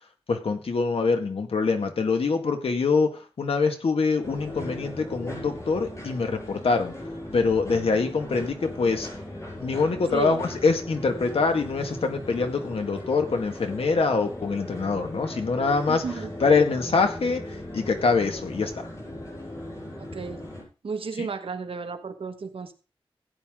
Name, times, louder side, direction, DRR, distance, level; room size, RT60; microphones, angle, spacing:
voice 1, 0.3-6.9 7.3-9.1 9.6-16.0 16.4-18.9 21.2-21.3, left 4 dB, 90° left, 5 dB, 1.9 m, -24 dB
sound 1, 4.2-20.6, left 1 dB, 35° left, 6.5 m, -38 dB
voice 2, 10.1-10.4 15.9-16.3 20.0-20.4 20.8-22.7, right 5 dB, 75° right, 6 dB, 1.5 m, -33 dB
15.5 x 9.5 x 3.8 m, 0.33 s
wide cardioid pair, 110°, 10 cm